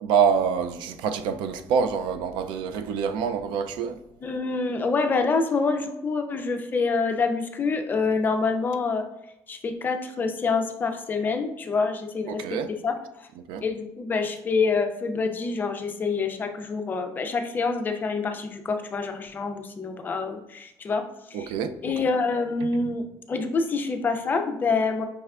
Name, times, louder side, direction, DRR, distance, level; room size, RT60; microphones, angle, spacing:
voice 1, 0.0-4.0 12.3-12.7 13.5-13.6 21.3-21.7, right 6 dB, 80° right, 0.4 m, -26 dB
voice 2, 4.2-9.0 9.5-12.4 12.8-12.9 13.6-21.0 21.3-21.5 21.8-23.0 23.3-25.1, left 4 dB, 25° left, 0.4 m, -26 dB
5.3 x 3.3 x 2.4 m
cardioid pair, 170°, 8 cm